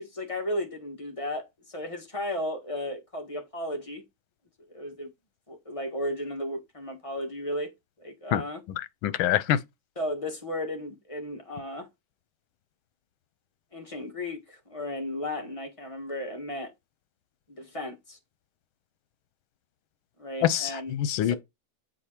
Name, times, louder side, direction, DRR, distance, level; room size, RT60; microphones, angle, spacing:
voice 1, 0.0-4.0 4.7-5.1 5.5-7.7 8.0-8.6 9.9-11.9 13.7-16.7 17.5-18.2 20.2-20.9 21.2-21.4, left 1 dB, 20° left, 1.5 m, -34 dB
voice 2, 8.8-9.6 20.4-21.4, left 11 dB, 85° left, 1.5 m, -25 dB
7.5 x 4.4 x 4.4 m
omnidirectional pair, 2.2 m